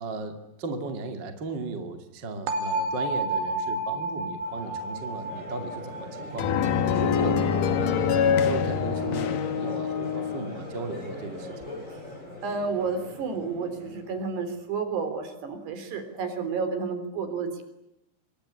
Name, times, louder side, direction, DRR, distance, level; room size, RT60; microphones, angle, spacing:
voice 1, 0.0-6.6 6.9-7.5 7.8-11.6, right 3 dB, 30° right, 5 dB, 2.3 m, -36 dB
sound 1, 2.5-8.3, right 2 dB, 90° right, 4.7 m, -32 dB
Crowd, 4.4-14.6, left 2 dB, 15° left, 8.1 m, -41 dB
sound 2, 6.4-10.5, left 7 dB, 60° left, 2.4 m, -25 dB
voice 2, 12.4-17.6, right 5 dB, 65° right, 9 dB, 5.6 m, -31 dB
26.5 x 23.0 x 9.9 m, 0.87 s
omnidirectional pair, 5.2 m